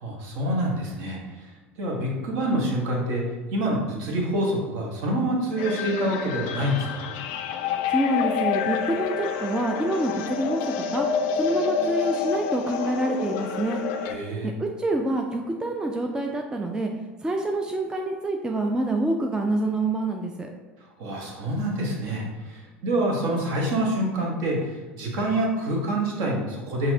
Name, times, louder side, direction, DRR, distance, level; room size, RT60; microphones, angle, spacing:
voice 1, 0.0-1.2 1.8-3.2 3.5-7.1 14.0-14.5 21.0-26.9, right 1 dB, 55° right, -1 dB, 1.1 m, -26 dB
sound 1, 5.6-14.1, left 7 dB, 55° left, 0.4 m, -28 dB
voice 2, 7.9-11.1 11.4-13.9 14.6-16.9 17.2-20.5, right 2 dB, 10° right, 2 dB, 0.4 m, -26 dB
5.7 x 2.6 x 2.7 m, 1.2 s
figure-of-eight pair, 70°, 7 cm